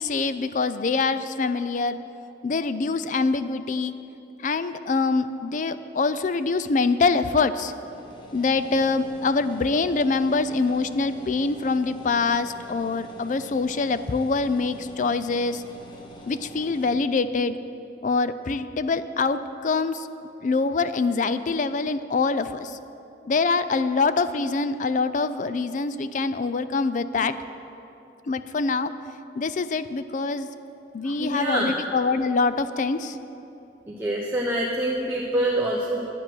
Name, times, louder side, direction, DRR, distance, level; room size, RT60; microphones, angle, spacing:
voice 1, 0.0-2.0 2.4-3.9 4.4-7.7 8.3-15.6 16.3-17.6 18.0-20.1 20.4-22.8 23.3-27.3 28.3-28.9 29.4-30.5 30.9-33.2, left 4 dB, 45° left, 12 dB, 0.4 m, -24 dB
sound 1, 7.8-16.9, equal, 25° left, 1.1 m, -45 dB
voice 2, 31.0-31.8 33.9-36.0, right 1 dB, 10° right, -4 dB, 0.8 m, -26 dB
11.0 x 9.0 x 6.2 m, 2.8 s
head